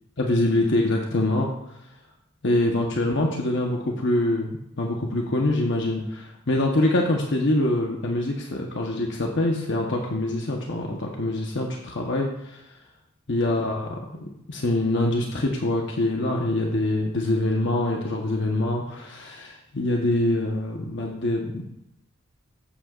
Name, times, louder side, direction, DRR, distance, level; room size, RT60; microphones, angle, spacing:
voice 1, 0.2-1.5 2.4-12.6 13.3-14.0 14.5-21.6, left 1 dB, 60° left, 0 dB, 1.1 m, -24 dB
14.0 x 8.3 x 2.5 m, 0.82 s
head